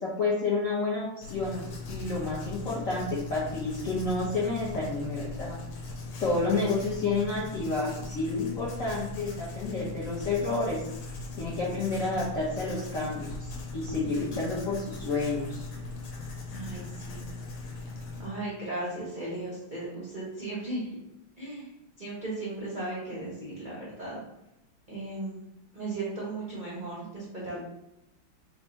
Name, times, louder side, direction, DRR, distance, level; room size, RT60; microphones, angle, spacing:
voice 1, 0.0-5.6 6.2-10.8 11.4-15.6, left 3 dB, 70° left, -7 dB, 0.8 m, -30 dB
Writing, 1.2-18.3, left 3 dB, 85° left, 1.6 m, -39 dB
voice 2, 16.5-17.2 18.2-20.9 21.4-21.7 22.0-24.2 24.9-25.4 25.7-27.6, right 2 dB, 65° right, -7 dB, 0.4 m, -36 dB
3.5 x 2.2 x 4.0 m, 0.87 s
omnidirectional pair, 2.3 m